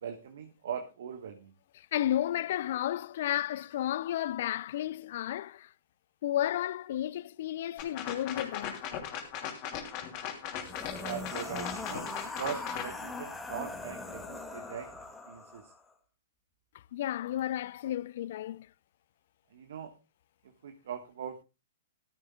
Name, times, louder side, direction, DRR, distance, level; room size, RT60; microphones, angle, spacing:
voice 1, 0.0-1.5 11.0-14.9 15.3-15.7 19.5-19.9 20.4-21.4, right 8 dB, 65° right, 1.4 m, -41 dB
voice 2, 1.8-5.7 6.2-8.8 16.9-18.7, left 12 dB, 60° left, 0.5 m, -32 dB
sound 1, 7.8-12.9, left 9 dB, 40° left, 2.9 m, -38 dB
sound 2, 10.5-15.8, left 2 dB, 5° left, 2.1 m, -41 dB
14.5 x 12.5 x 2.3 m
hypercardioid pair, 125°, 0 cm